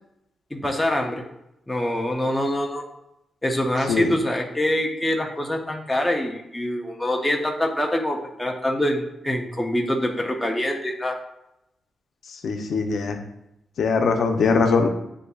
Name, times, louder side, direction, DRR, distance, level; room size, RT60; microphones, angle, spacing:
voice 1, 0.5-1.2 1.7-2.8 3.4-11.2, left 1 dB, 10° left, 0 dB, 0.5 m, -25 dB
voice 2, 12.4-13.2 13.8-14.9, left 4 dB, 70° left, 5 dB, 0.6 m, -21 dB
7.8 x 2.7 x 2.3 m, 0.86 s
cardioid pair, 105°, 0 cm